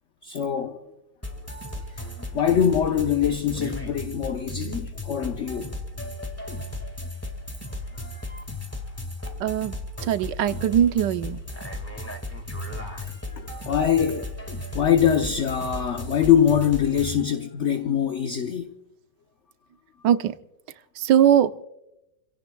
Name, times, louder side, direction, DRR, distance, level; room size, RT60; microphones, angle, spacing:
voice 1, 0.2-0.9 1.8-5.7 7.7-8.4 12.7-14.3 14.7-18.7, left 9 dB, 50° left, 1.0 m, -24 dB
sound 1, 1.2-17.2, left 1 dB, 10° left, 1.8 m, -35 dB
voice 2, 9.4-9.8 10.1-11.4 20.0-20.3 21.0-21.6, right 10 dB, 75° right, 1.3 m, -20 dB
29.5 x 17.0 x 2.3 m
omnidirectional pair, 1.9 m